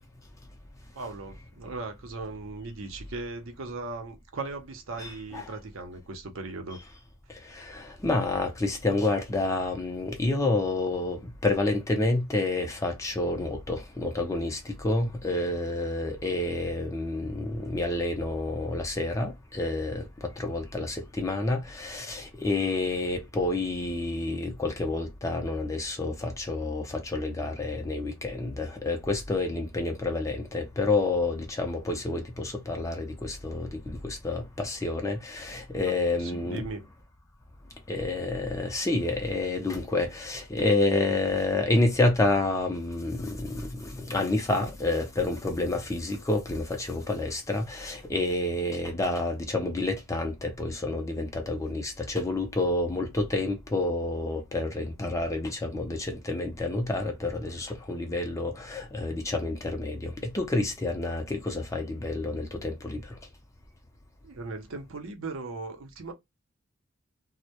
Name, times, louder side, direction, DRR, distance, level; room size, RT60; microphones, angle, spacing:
voice 1, 0.9-6.8 36.2-36.8 64.2-66.1, right 3 dB, 75° right, 0.6 m, -38 dB
voice 2, 5.0-5.5 7.5-36.7 37.9-63.1, left 2 dB, 15° left, 0.4 m, -29 dB
2.2 x 2.0 x 2.8 m
head